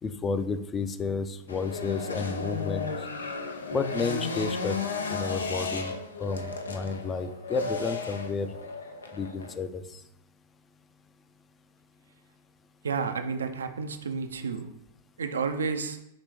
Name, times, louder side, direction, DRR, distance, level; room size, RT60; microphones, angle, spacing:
voice 1, 0.0-2.9 3.7-4.8 5.1-5.9 6.2-8.5 9.1-9.8, left 4 dB, 25° left, 11 dB, 0.4 m, -31 dB
sound 1, 1.5-9.6, left 4 dB, 85° left, 0.4 m, -34 dB
voice 2, 12.8-14.7 15.2-16.0, right 5 dB, 80° right, 8 dB, 0.4 m, -31 dB
5.0 x 3.3 x 3.1 m, 0.81 s
hypercardioid pair, 100°, 0 cm